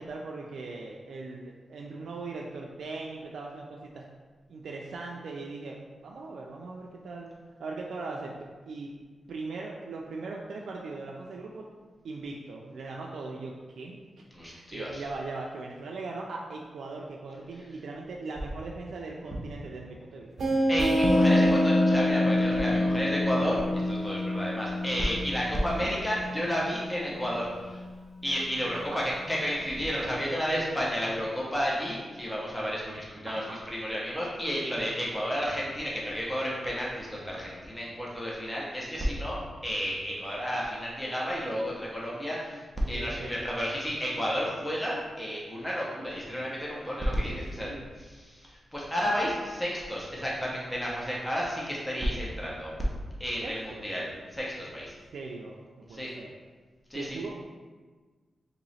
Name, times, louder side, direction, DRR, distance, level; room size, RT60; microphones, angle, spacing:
voice 1, 0.0-4.0 4.5-7.3 7.6-8.3 8.7-8.9 9.3-11.6 12.0-20.3 21.1-21.4 25.8-25.9 28.7-29.0 33.3-33.6 42.8-43.3 47.1-47.8 53.4-53.9 55.1-55.6 55.9-56.3 56.9-57.5, right 3 dB, 85° right, -1 dB, 0.3 m, -39 dB
voice 2, 14.3-15.0 20.7-27.8 28.2-52.7 53.2-54.9 55.9-56.1 56.9-57.2, equal, 10° left, -5 dB, 0.8 m, -32 dB
sound 1, 20.4-25.8, equal, 65° right, 0.8 m, -28 dB
Musical instrument, 21.0-28.9 29.2-29.4, left 2 dB, 65° left, 0.3 m, -30 dB
3.0 x 2.9 x 4.1 m, 1.4 s
wide cardioid pair, 120°, 0 cm